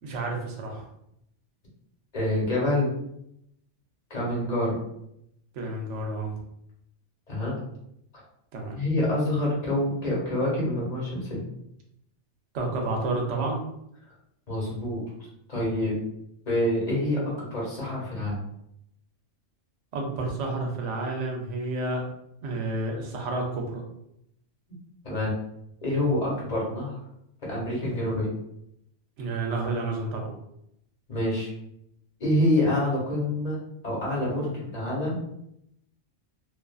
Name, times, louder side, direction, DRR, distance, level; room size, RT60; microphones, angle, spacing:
voice 1, 0.0-0.8 5.5-6.4 8.5-8.7 12.5-13.6 19.9-22.0 22.4-23.8 29.2-30.3, right 2 dB, 80° right, 1 dB, 1.0 m, -30 dB
voice 2, 2.1-2.9 4.1-4.8 7.3-7.6 8.7-11.4 14.5-15.0 15.5-16.0 16.5-18.4 25.0-25.3 25.8-27.0 27.4-28.3 31.1-31.5 32.2-33.6 33.8-35.1, left 1 dB, 40° left, -5 dB, 1.0 m, -26 dB
2.6 x 2.4 x 2.3 m, 0.76 s
omnidirectional pair, 1.2 m